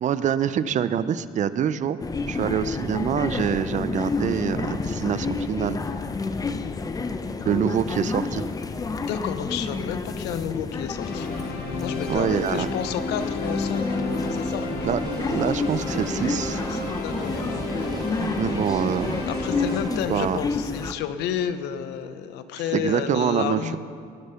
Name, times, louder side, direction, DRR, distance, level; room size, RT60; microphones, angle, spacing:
voice 1, 0.0-2.0 2.3-5.8 7.4-8.4 12.1-12.7 14.8-15.0 15.3-16.6 18.4-19.3 20.1-20.4 22.7-23.8, right 9 dB, 45° right, 14 dB, 0.5 m, -25 dB
sound 1, 2.0-20.9, left 4 dB, 20° left, 0.6 m, -30 dB
voice 2, 8.9-11.3 11.8-14.0 14.3-14.7 16.7-17.5 19.3-23.8, left 9 dB, 85° left, 11 dB, 0.8 m, -31 dB
sound 2, 11.0-19.8, left 3 dB, 70° left, 1.8 m, -32 dB
sound 3, 15.0-20.0, right 2 dB, 25° right, 1.3 m, -35 dB
19.5 x 6.6 x 5.6 m, 2.4 s
cardioid pair, 110°, 17 cm